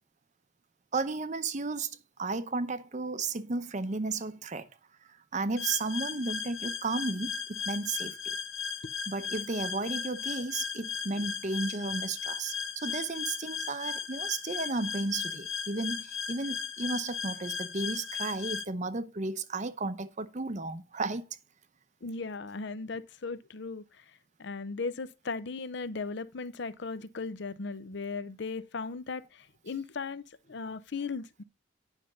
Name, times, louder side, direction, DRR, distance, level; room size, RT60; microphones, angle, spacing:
voice 1, 0.9-4.7 5.0-8.4 9.1-21.2, right 3 dB, 35° right, 0.6 m, -34 dB
sound 1, 5.6-18.6, left 6 dB, 75° left, 1.0 m, -36 dB
voice 2, 22.0-23.8 24.4-30.2 30.5-31.4, left 4 dB, 55° left, 0.6 m, -37 dB
9.8 x 5.8 x 5.0 m
head